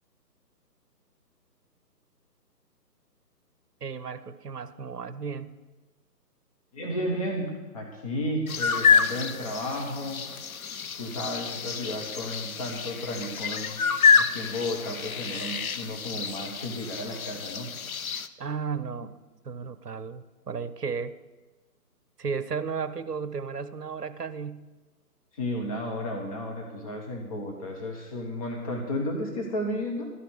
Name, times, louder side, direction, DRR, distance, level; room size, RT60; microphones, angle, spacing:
voice 1, 3.8-5.5 18.4-19.1 19.4-21.2 22.2-24.7, right 5 dB, 70° right, 13 dB, 0.8 m, -34 dB
voice 2, 6.7-10.2 11.0-13.8 14.1-17.7 25.3-30.1, left 1 dB, 20° left, 0 dB, 1.1 m, -33 dB
sound 1, 8.5-18.3, left 6 dB, 60° left, 0.6 m, -27 dB
12.5 x 5.8 x 8.2 m, 1.2 s
figure-of-eight pair, 140°, 49 cm